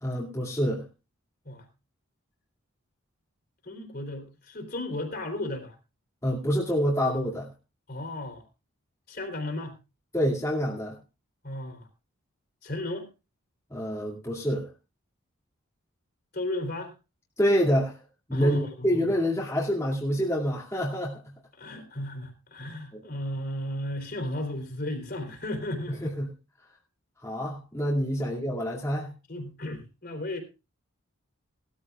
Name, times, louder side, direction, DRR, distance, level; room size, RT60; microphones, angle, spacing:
voice 1, 0.0-0.8 6.2-7.5 10.1-11.0 13.7-14.7 17.4-18.0 18.3-21.2 26.2-26.3 27.2-29.1, equal, 15° left, -4 dB, 2.4 m, -27 dB
voice 2, 3.6-5.8 7.9-8.4 9.1-9.8 11.4-11.9 12.6-13.1 16.3-16.9 18.3-19.1 21.5-26.2 28.2-28.3 29.3-30.4, left 1 dB, 45° left, 4 dB, 3.6 m, -34 dB
19.5 x 13.5 x 2.4 m, 0.29 s
head